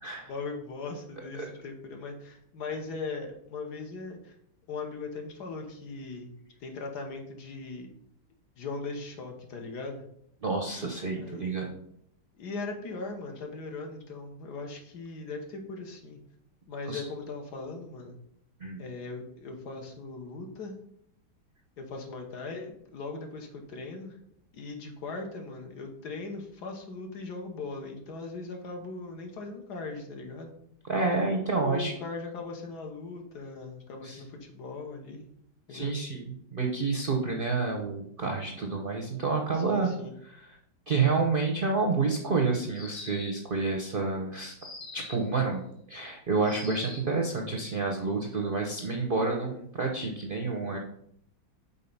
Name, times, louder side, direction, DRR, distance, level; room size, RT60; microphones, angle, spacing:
voice 1, 0.3-4.4 4.7-6.3 6.6-7.9 8.6-10.0 11.1-11.5 12.4-16.2 16.7-18.2 18.8-20.7 21.8-24.2 24.5-30.5 31.6-35.3 35.7-35.9 39.5-40.1, left 3 dB, 65° left, 3 dB, 1.6 m, -39 dB
voice 2, 10.4-11.7 16.9-17.0 18.6-18.8 30.9-31.9 34.0-34.2 35.7-39.9 40.2-40.5 40.9-44.6 44.9-45.6 45.9-50.8, right 4 dB, 50° right, 1 dB, 0.6 m, -29 dB
sound 1, 42.7-43.5 44.6-45.3 46.4-47.2, left 3 dB, 40° left, 1.1 m, -44 dB
5.5 x 4.3 x 5.4 m, 0.72 s
omnidirectional pair, 1.9 m